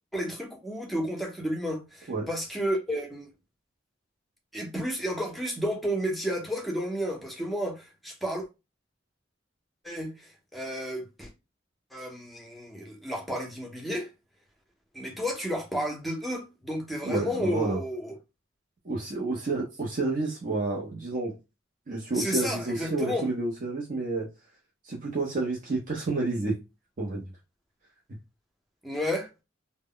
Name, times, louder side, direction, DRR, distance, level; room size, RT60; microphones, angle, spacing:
voice 1, 0.1-3.3 4.5-8.4 9.8-11.3 11.9-14.1 14.9-18.1 22.1-23.3 28.8-29.3, equal, ahead, 0.6 m, -32 dB
voice 2, 17.0-17.8 18.8-21.4 21.9-24.3 24.8-26.5 27.0-27.2, right 3 dB, 45° right, 0.6 m, -29 dB
2.1 x 2.0 x 3.7 m
head